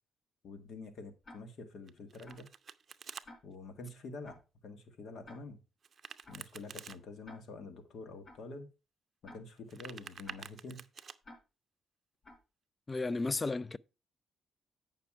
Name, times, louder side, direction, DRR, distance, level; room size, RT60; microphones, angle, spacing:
voice 1, 0.4-2.5 3.4-5.6 6.3-8.7 9.3-10.9, left 3 dB, 65° left, 1.7 m, -47 dB
Tick-tock, 1.2-1.4 2.2-2.4 3.2-3.4 4.2-4.4 5.2-5.4 6.2-6.4 7.2-7.4 8.2-8.4 9.2-9.4 10.2-10.4 11.2-11.4 12.2-12.4, left 1 dB, 45° left, 4.0 m, -52 dB
Domestic sounds home sounds, 1.9-3.3 5.8-7.0 9.5-11.2, right 7 dB, 45° right, 0.6 m, -49 dB
voice 2, 12.9-13.8, left 3 dB, 25° left, 0.4 m, -33 dB
8.9 x 5.8 x 4.6 m
cardioid pair, 90°, 0 cm